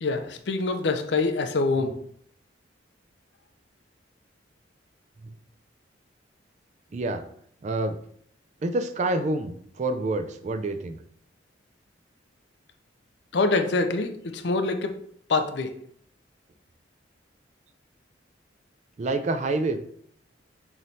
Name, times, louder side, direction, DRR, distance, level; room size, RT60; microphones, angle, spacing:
voice 1, 0.0-1.9 13.3-14.9 15.3-15.7, left 3 dB, 65° left, 7 dB, 0.5 m, -25 dB
voice 2, 6.9-7.3 7.6-8.0 8.6-11.0 19.0-19.8, right 2 dB, 40° right, 9 dB, 0.4 m, -27 dB
5.7 x 3.1 x 2.7 m, 0.64 s
head